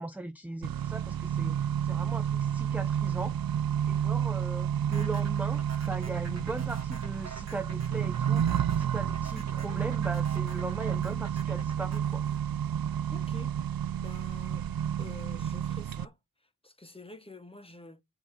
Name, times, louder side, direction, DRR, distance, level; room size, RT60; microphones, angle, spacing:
voice 1, 0.0-3.4 3.9-12.3, right 2 dB, 5° right, 0.4 m, -39 dB
Accelerating revving vroom, 0.6-16.0, right 9 dB, 80° right, 0.5 m, -30 dB
sound 1, 4.9-13.3, right 4 dB, 45° right, 1.5 m, -48 dB
voice 2, 13.1-14.7 15.0-18.0, left 2 dB, 15° left, 1.0 m, -49 dB
9.3 x 5.0 x 4.1 m
wide cardioid pair, 90°, 35 cm